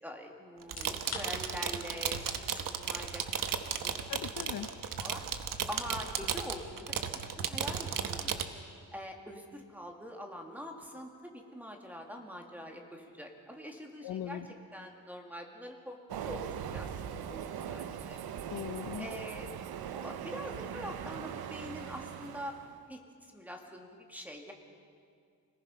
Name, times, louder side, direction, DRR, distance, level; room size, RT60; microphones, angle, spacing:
voice 1, 0.0-4.3 5.0-5.2 5.7-7.1 7.4-8.4 8.9-14.4 14.7-18.2 19.0-19.5 19.9-22.6 22.9-23.0 23.3-24.5, equal, 5° right, 2 dB, 2.2 m, -44 dB
sound 1, 0.6-15.4, left 4 dB, 45° left, 3.3 m, -55 dB
sound 2, 0.6-8.4, right 7 dB, 60° right, 1.2 m, -35 dB
voice 2, 4.1-4.7 14.0-14.5 18.5-19.1, left 10 dB, 70° left, 9 dB, 0.9 m, -39 dB
Train, 16.1-22.8, right 8 dB, 90° right, 1.0 m, -40 dB
26.0 x 19.0 x 5.6 m, 2.2 s
wide cardioid pair, 140°, 36 cm